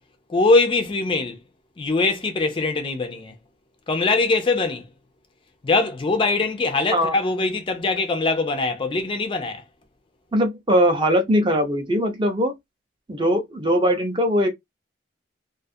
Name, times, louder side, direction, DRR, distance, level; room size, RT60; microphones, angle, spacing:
voice 1, 0.3-1.4 1.8-3.3 3.9-4.9 5.6-9.6, left 3 dB, 25° left, 0.4 m, -22 dB
voice 2, 10.3-12.5 13.1-14.5, equal, 25° right, 0.6 m, -20 dB
2.4 x 2.3 x 2.6 m
head